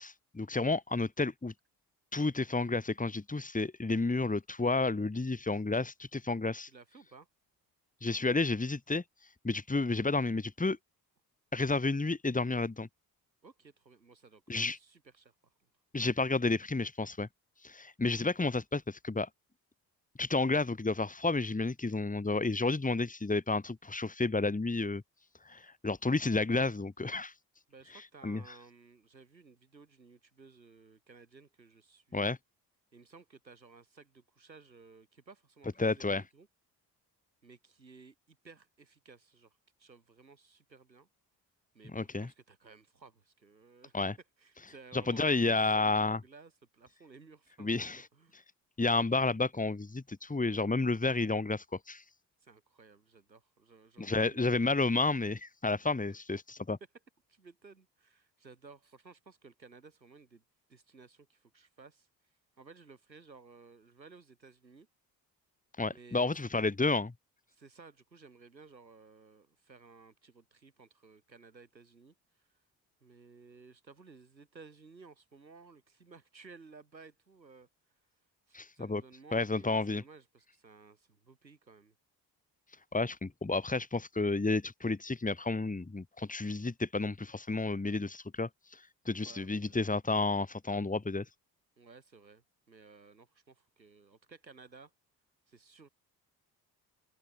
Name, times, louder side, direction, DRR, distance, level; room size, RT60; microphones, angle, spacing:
voice 1, 0.0-1.5 2.1-6.7 8.0-9.0 9.4-10.8 11.5-12.9 14.5-14.8 15.9-17.3 17.6-19.3 20.2-25.0 25.5-27.3 28.2-28.4 32.1-32.4 35.8-36.2 41.9-42.3 43.9-44.2 44.9-46.2 47.6-48.0 48.8-52.0 54.0-56.8 65.8-67.1 78.5-79.0 79.3-80.0 82.9-91.3, left 3 dB, 15° left, 3.6 m, -31 dB
voice 2, 6.6-7.3 13.4-14.4 14.7-15.7 27.7-32.3 32.9-36.5 37.4-41.1 41.7-43.9 44.4-48.4 52.4-54.5 57.3-60.4 60.7-62.1 62.6-64.9 65.9-66.7 67.5-72.5 73.0-77.7 78.5-81.9 89.1-89.8 91.8-94.9 95.5-95.9, right 4 dB, 90° right, 6.1 m, -57 dB
open air
figure-of-eight pair, 45°, 50 cm